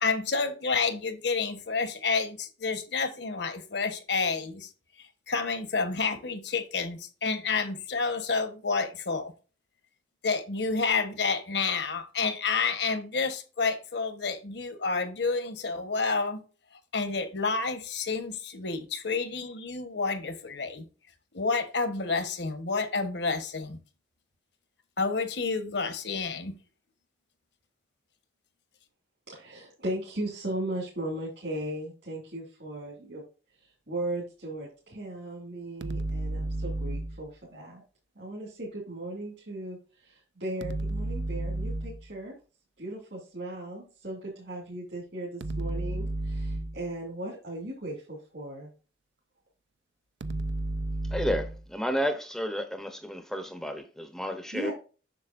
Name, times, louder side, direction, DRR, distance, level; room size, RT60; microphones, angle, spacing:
voice 1, 0.0-4.7 5.0-9.3 10.2-16.4 16.9-20.9 21.3-23.8 25.0-26.6, left 4 dB, 65° left, 1.2 m, -29 dB
voice 2, 29.3-33.2 33.6-37.8 38.2-42.4 42.8-48.7 54.5-54.7, right 1 dB, 65° right, 2.6 m, -37 dB
sound 1, 35.8-37.3 40.6-42.1 45.4-46.9 50.2-51.7, right 1 dB, 80° right, 0.6 m, -32 dB
voice 3, 51.1-54.7, equal, ahead, 0.7 m, -31 dB
7.5 x 6.6 x 2.5 m
head